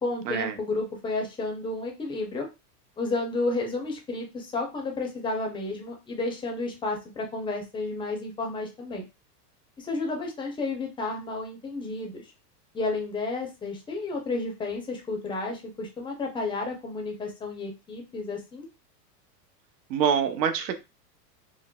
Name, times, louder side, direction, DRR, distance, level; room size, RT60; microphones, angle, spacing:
voice 1, 0.0-2.5 3.0-9.1 9.8-12.3 12.7-18.7, left 3 dB, 10° left, 2 dB, 0.5 m, -31 dB
voice 2, 19.9-20.7, right 7 dB, 85° right, 8 dB, 0.7 m, -25 dB
3.8 x 2.1 x 2.2 m, 0.26 s
supercardioid pair, 125°, 48 cm